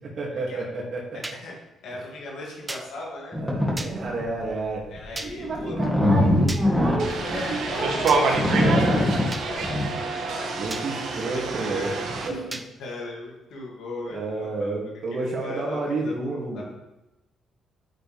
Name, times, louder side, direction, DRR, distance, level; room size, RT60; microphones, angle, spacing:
voice 1, 0.0-1.2 3.4-4.8 5.2-7.9 8.5-9.2 9.5-9.7 10.6-11.9 12.3-12.5 14.1-16.6, right 2 dB, 50° right, -2 dB, 2.6 m, -31 dB
voice 2, 1.1-1.5 1.8-3.4 4.9-5.8 7.1-9.1 9.4-10.5 11.3-12.0 12.2-16.6, left 2 dB, 80° left, -3 dB, 2.6 m, -38 dB
sound 1, 1.2-1.4 2.7-2.9 3.8-3.9 5.2-5.3 6.5-6.6 8.1-8.2 9.3-9.5 10.7-10.9 12.5-12.7, right 2 dB, 20° right, 0.7 m, -34 dB
sound 2, 3.3-3.7 4.2-4.5 4.9-9.9, left 1 dB, ahead, 2.2 m, -22 dB
sound 3, 7.0-12.3, right 4 dB, 70° right, 1.5 m, -27 dB
8.6 x 8.1 x 3.6 m, 0.97 s
cardioid pair, 90°, 0 cm